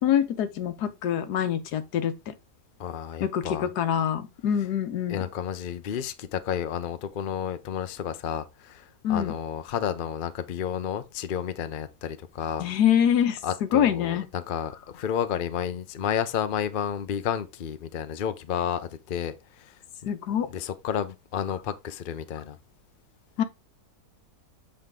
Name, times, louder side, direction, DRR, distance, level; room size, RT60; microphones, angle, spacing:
voice 1, 0.0-2.3 3.2-5.3 9.0-9.3 12.6-14.2 20.1-20.5 23.4-23.5, left 9 dB, 85° left, 1.4 m, -25 dB
voice 2, 2.8-3.7 5.1-12.7 13.4-19.8 20.0-20.1 20.5-22.6, left 8 dB, 50° left, 0.6 m, -31 dB
7.8 x 4.9 x 3.6 m
omnidirectional pair, 1.7 m